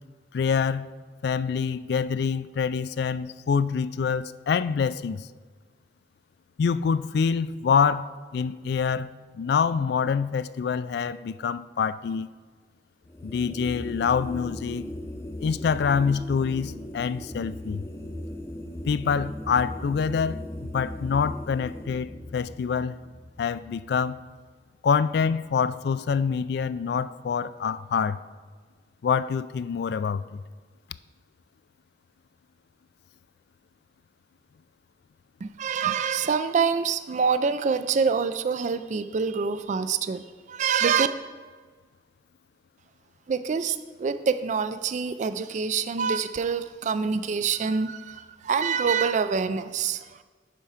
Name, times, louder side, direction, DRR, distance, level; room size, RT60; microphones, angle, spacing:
voice 1, 0.3-0.9 1.2-5.3 6.6-9.1 9.4-12.3 13.2-14.8 15.4-17.9 18.9-23.0 23.4-24.2 24.8-28.2 29.0-30.4, left 6 dB, 65° left, 0.3 m, -26 dB
sound 1, 13.0-24.4, left 1 dB, 15° left, 0.6 m, -38 dB
voice 2, 35.4-41.1 43.3-50.0, right 6 dB, 45° right, 0.3 m, -26 dB
10.5 x 4.6 x 5.7 m
head